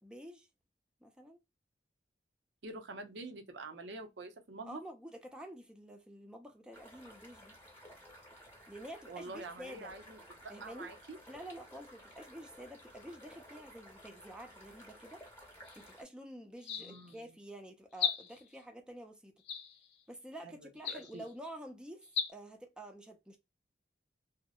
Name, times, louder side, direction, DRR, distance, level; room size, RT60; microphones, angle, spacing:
voice 1, 0.0-0.5 1.0-1.4 4.6-7.5 8.7-10.0 10.5-10.9 11.3-15.3 15.8-19.4 20.1-23.4, right 1 dB, 5° right, 0.5 m, -49 dB
voice 2, 2.6-4.8 9.1-11.2 16.8-17.2 20.4-21.2, right 3 dB, 85° right, 0.6 m, -47 dB
sound 1, 6.7-16.0, equal, 15° left, 0.9 m, -55 dB
sound 2, 15.6-15.9 16.6-17.2 17.9-18.5 19.4-20.0 20.8-21.3 22.0-22.3, left 7 dB, 70° left, 0.5 m, -37 dB
2.7 x 2.0 x 2.3 m
head